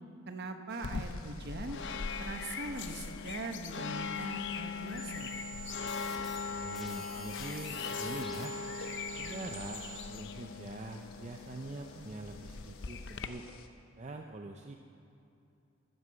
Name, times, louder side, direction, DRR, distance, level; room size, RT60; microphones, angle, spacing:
voice 1, 0.3-1.8 2.2-5.4, right 2 dB, 50° right, 6 dB, 1.0 m, -41 dB
sound 1, 0.7-13.7, left 5 dB, 80° left, 1.0 m, -55 dB
sound 2, 0.8-13.3, left 5 dB, 55° left, 0.6 m, -40 dB
sound 3, 5.0-10.0, right 5 dB, ahead, 1.4 m, -48 dB
voice 2, 6.5-8.6 9.1-13.5 14.0-14.7, right 2 dB, 35° right, 3 dB, 0.6 m, -44 dB
12.5 x 8.1 x 7.8 m, 2.7 s
head